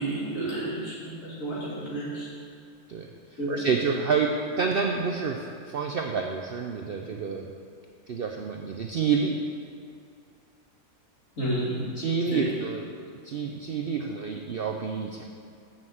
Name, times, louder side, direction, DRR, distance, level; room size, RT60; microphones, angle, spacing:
voice 1, 0.0-2.3 3.4-3.7 11.4-11.9 12.3-12.5, right 1 dB, 60° left, -8 dB, 3.2 m, -31 dB
voice 2, 3.5-7.5 8.1-9.4 12.0-12.9 13.2-15.2, right 5 dB, 60° right, 2 dB, 0.6 m, -28 dB
7.4 x 6.3 x 7.8 m, 2.4 s
omnidirectional pair, 1.6 m